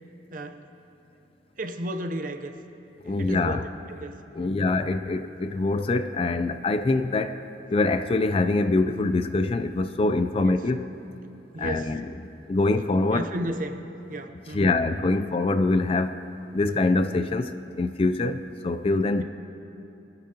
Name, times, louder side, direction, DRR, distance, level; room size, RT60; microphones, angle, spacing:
voice 1, 0.3-0.6 1.6-2.5 3.0-4.7 10.4-10.6 11.5-12.0 13.1-14.8 15.1-15.2 19.2-19.3, right 1 dB, 45° right, 7 dB, 0.7 m, -34 dB
voice 2, 3.0-3.6 4.3-7.4 7.7-10.8 11.6-12.1 12.5-13.3 14.5-16.2 16.5-19.2, left 2 dB, 30° left, 10 dB, 0.3 m, -24 dB
23.0 x 9.8 x 2.9 m, 3.0 s
head